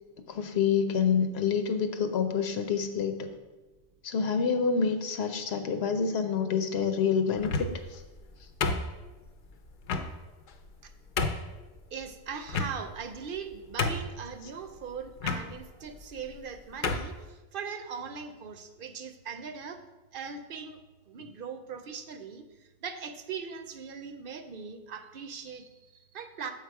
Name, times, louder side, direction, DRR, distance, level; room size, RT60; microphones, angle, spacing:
voice 1, 0.3-3.2 4.0-8.0, left 6 dB, 90° left, 6 dB, 1.0 m, -27 dB
sound 1, 7.4-7.9 8.6-9.3 9.9-10.1 10.7-10.8 11.2-11.5 12.5-13.0 13.4-13.5 13.8-14.3 15.2-15.4 16.3-16.4 16.8-17.1, left 4 dB, 60° left, 0.7 m, -30 dB
voice 2, 11.9-19.8 20.1-26.5, right 6 dB, 65° right, 7 dB, 0.7 m, -40 dB
7.4 x 4.8 x 4.7 m, 1.2 s
omnidirectional pair, 1.0 m